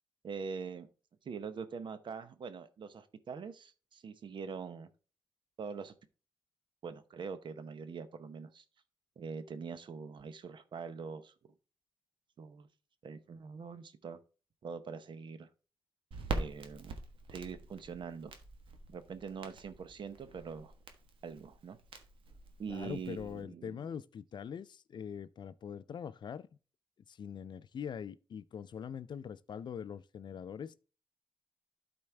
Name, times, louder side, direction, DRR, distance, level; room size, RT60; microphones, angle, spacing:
voice 1, 0.2-0.9 1.2-4.9 5.6-5.9 6.8-8.6 9.2-11.5 12.4-12.7 13.0-14.2 14.6-15.5 16.3-17.0 17.3-18.3 18.9-20.7 21.2-21.8 22.6-23.9, right 5 dB, 65° right, 0.9 m, -43 dB
Crackle, 16.1-23.4, right 3 dB, 85° right, 1.3 m, -44 dB
voice 2, 22.7-26.5 27.1-30.8, left 7 dB, 60° left, 0.4 m, -43 dB
12.0 x 4.4 x 3.3 m
cardioid pair, 95°, 9 cm